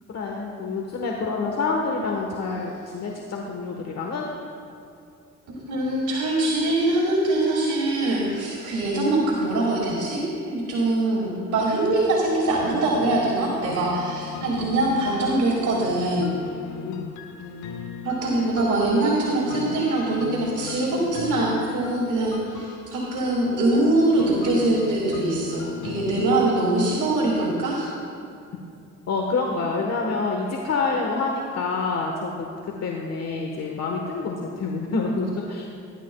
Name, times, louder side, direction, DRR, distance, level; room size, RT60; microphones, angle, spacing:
voice 1, 0.1-4.3 16.9-17.1 29.1-35.7, left 4 dB, 60° left, 0 dB, 1.3 m, -27 dB
voice 2, 5.7-16.3 18.0-27.9, right 2 dB, 75° right, -4 dB, 2.3 m, -23 dB
sound 1, 11.8-26.5, left 8 dB, 75° left, 0.9 m, -38 dB
19.0 x 11.0 x 2.3 m, 2.6 s
cardioid pair, 90°, 30 cm